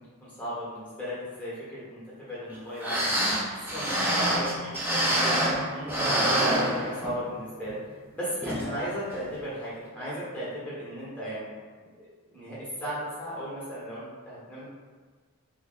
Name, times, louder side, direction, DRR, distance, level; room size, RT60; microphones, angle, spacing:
voice 1, 0.2-3.1 3.5-5.3 5.7-7.8 8.1-11.5 11.9-12.0 12.3-14.7, equal, 5° left, -8 dB, 1.0 m, -36 dB
sound 1, 2.5-2.6 2.8-5.6 5.9-7.3 7.7-7.8 8.4-8.7 9.1-9.2, right 1 dB, 10° right, 0.5 m, -26 dB
3.0 x 2.0 x 3.8 m, 1.5 s
head